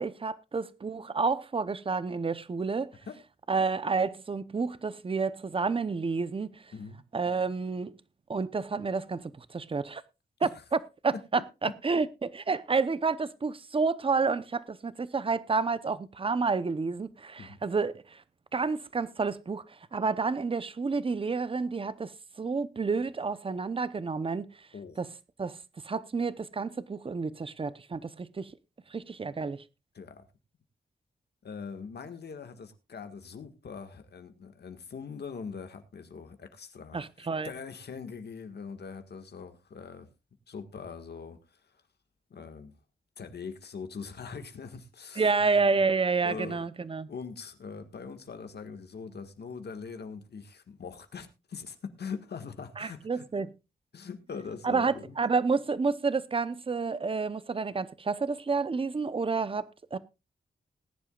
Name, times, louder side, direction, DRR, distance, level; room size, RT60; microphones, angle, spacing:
voice 1, 0.0-2.9 3.5-6.7 7.1-8.0 8.3-10.0 10.4-10.5 11.0-11.1 11.6-18.2 18.5-22.1 22.4-24.5 25.0-25.1 25.4-25.6 25.8-28.5 28.9-29.6 36.9-37.5 45.2-47.1 52.8-53.5 54.6-60.0, right 4 dB, 30° right, 0.7 m, -29 dB
voice 2, 6.7-7.0 10.4-10.5 11.1-11.5 17.4-17.6 24.7-25.0 29.9-30.2 31.4-40.1 40.5-41.6 42.3-42.7 43.2-45.9 46.2-46.6 47.1-53.3 53.9-55.1, left 5 dB, 70° left, 1.7 m, -42 dB
20.0 x 10.5 x 2.4 m
wide cardioid pair, 150°, 18 cm